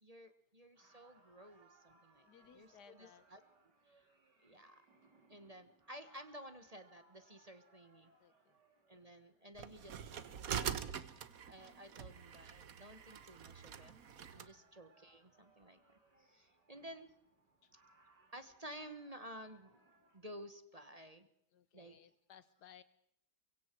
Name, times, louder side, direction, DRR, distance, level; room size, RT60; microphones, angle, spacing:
voice 1, 0.0-2.3 2.5-3.4 3.9-4.1 4.4-4.8 5.3-8.1 8.9-10.7 11.4-13.9 14.3-15.8 16.1-17.1 17.7-19.8 20.1-21.3 21.7-22.0, equal, 25° right, 9 dB, 1.2 m, -54 dB
sound 1, 0.8-20.2, right 3 dB, 85° right, 3.9 m, -70 dB
voice 2, 2.3-3.3 8.2-8.6 17.6-17.7 21.5-22.8, left 8 dB, 75° left, 15 dB, 1.6 m, -61 dB
sound 2, 9.6-14.5, right 8 dB, 60° right, 1.4 m, -44 dB
24.5 x 23.0 x 4.6 m, 0.73 s
omnidirectional pair, 1.8 m